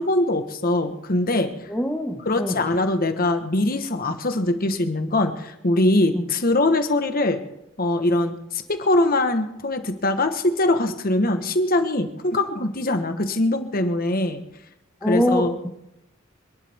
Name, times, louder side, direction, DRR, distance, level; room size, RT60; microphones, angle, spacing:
voice 1, 0.0-1.5 2.3-7.4 7.8-14.4 15.1-15.5, left 2 dB, 45° left, 7 dB, 1.3 m, -22 dB
voice 2, 1.7-2.6 6.1-6.3 15.0-15.7, left 1 dB, 5° left, 3 dB, 1.4 m, -24 dB
26.5 x 11.0 x 3.6 m, 0.86 s
head